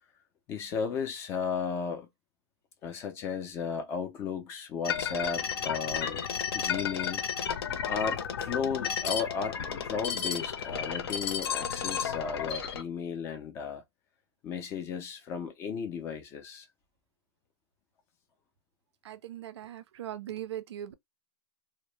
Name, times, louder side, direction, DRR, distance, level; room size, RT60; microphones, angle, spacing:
voice 1, 0.5-2.1 2.8-6.2 6.5-7.2 7.9-9.6 9.8-13.8 14.4-16.7, left 6 dB, 15° left, 0.4 m, -34 dB
sound 1, 4.8-12.8, left 7 dB, 60° left, 0.6 m, -33 dB
voice 2, 19.0-20.9, right 11 dB, 75° right, 0.4 m, -40 dB
2.1 x 2.0 x 3.1 m
hypercardioid pair, 160°, 14 cm